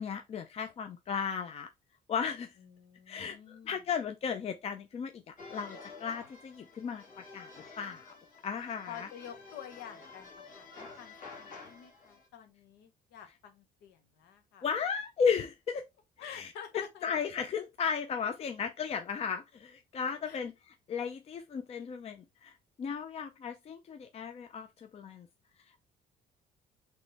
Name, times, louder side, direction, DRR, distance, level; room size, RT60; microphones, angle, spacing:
voice 1, 0.0-1.7 2.1-2.5 3.1-3.4 3.7-5.1 5.5-7.0 7.3-8.1 8.4-9.1 14.6-15.8 16.2-25.3, left 6 dB, 35° left, 0.5 m, -35 dB
voice 2, 2.6-3.8 8.9-14.7 16.2-17.1 20.2-20.4, left 9 dB, 85° left, 1.1 m, -49 dB
sound 1, 5.4-12.3, left 4 dB, 55° left, 1.7 m, -50 dB
3.7 x 3.1 x 4.0 m
cardioid pair, 110°, 17 cm